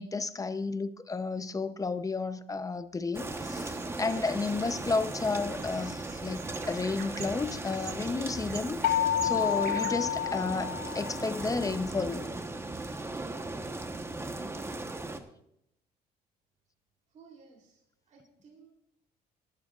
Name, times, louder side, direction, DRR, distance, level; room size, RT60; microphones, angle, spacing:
voice 1, 0.0-6.4 6.7-12.3, left 4 dB, 20° left, 0.7 m, -32 dB
sound 1, 3.1-15.2, right 2 dB, 15° right, 1.1 m, -37 dB
sound 2, 3.2-9.9, right 8 dB, 70° right, 1.3 m, -47 dB
sound 3, 8.8-11.6, left 10 dB, 75° left, 0.5 m, -30 dB
voice 2, 17.1-18.7, right 5 dB, 50° right, 3.3 m, -57 dB
19.0 x 12.0 x 2.5 m
cardioid pair, 110°, 17 cm